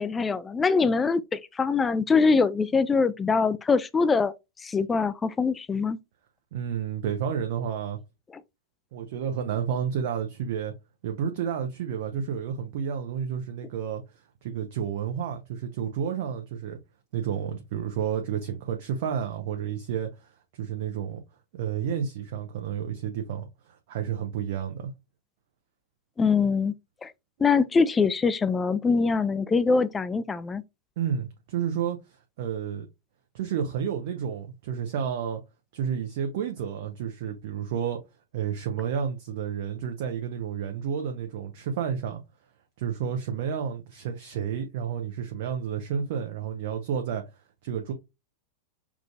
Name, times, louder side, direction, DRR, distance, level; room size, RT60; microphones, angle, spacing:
voice 1, 0.0-4.3 4.6-6.0 26.2-26.7 27.0-27.1 27.4-30.6, left 4 dB, 15° left, 0.3 m, -23 dB
voice 2, 6.5-8.0 8.9-10.7 11.0-14.0 14.4-16.8 17.1-21.2 21.5-24.9 31.0-32.9 33.3-35.4 35.7-38.0 38.3-42.2 42.8-47.2 47.6-47.9, right 8 dB, 50° right, 0.6 m, -31 dB
5.9 x 2.5 x 2.3 m
figure-of-eight pair, 90°, 0 cm